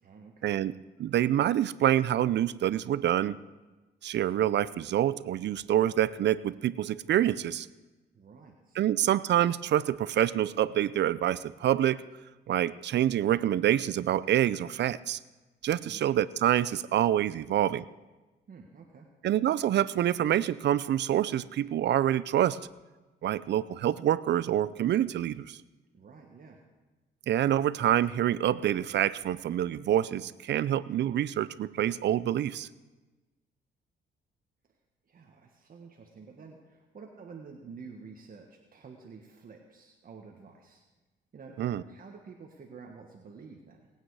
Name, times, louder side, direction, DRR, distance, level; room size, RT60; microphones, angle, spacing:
voice 1, 0.0-0.6 8.1-8.8 15.8-16.3 18.5-19.1 25.9-26.6 35.0-40.8 41.3-43.9, right 5 dB, 45° right, 1 dB, 1.5 m, -50 dB
voice 2, 1.0-3.4 4.0-7.7 8.8-12.0 12.5-15.2 15.6-17.8 19.2-22.6 23.2-25.6 27.3-32.7 41.6-41.8, right 11 dB, 60° right, 17 dB, 0.5 m, -26 dB
19.5 x 9.0 x 4.8 m, 1.2 s
cardioid pair, 90°, 20 cm